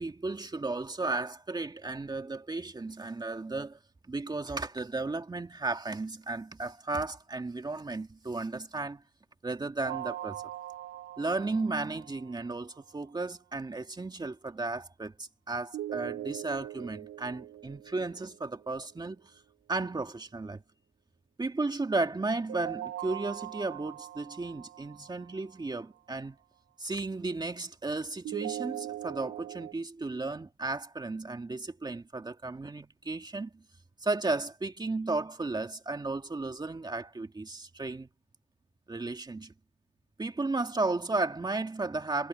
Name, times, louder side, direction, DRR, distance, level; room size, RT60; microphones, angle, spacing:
voice 1, 0.0-3.8 4.1-9.0 9.4-10.4 11.2-19.3 19.7-20.6 21.4-26.4 26.8-33.6 34.0-38.1 38.9-39.5 40.2-42.3, right 3 dB, 20° right, 2.2 m, -34 dB
sound 1, 9.8-12.8 15.7-18.8 22.5-25.7 28.2-29.7, right 13 dB, 85° right, 3.8 m, -41 dB
cardioid pair, 90°, 20 cm